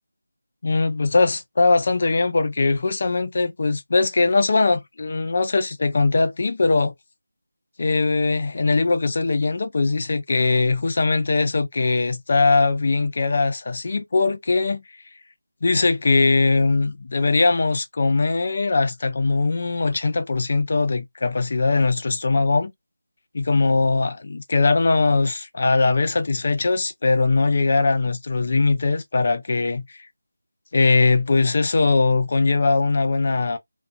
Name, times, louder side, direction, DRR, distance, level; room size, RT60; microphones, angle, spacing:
voice 1, 0.6-6.9 7.8-14.8 15.6-22.7 23.3-30.1 30.7-33.6, left 3 dB, 45° left, 0.5 m, -20 dB
2.4 x 2.4 x 2.3 m
figure-of-eight pair, 165°, 0 cm